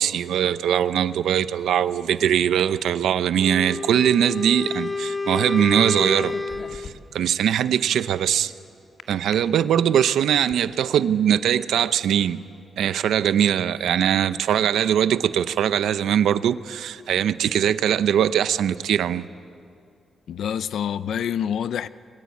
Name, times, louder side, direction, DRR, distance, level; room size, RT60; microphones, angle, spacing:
voice 1, 0.0-6.3 6.7-8.5 9.1-12.4 12.8-19.2, right 9 dB, 90° right, 0.8 m, -21 dB
Wind instrument woodwind instrument, 3.4-6.9, left 3 dB, 15° left, 0.9 m, -29 dB
sound 1, 6.0-7.3 9.0-9.3 10.0-10.6, left 5 dB, 55° left, 1.9 m, -40 dB
voice 2, 20.3-21.9, left 8 dB, 75° left, 0.6 m, -27 dB
28.5 x 23.0 x 8.5 m
wide cardioid pair, 140°, 0 cm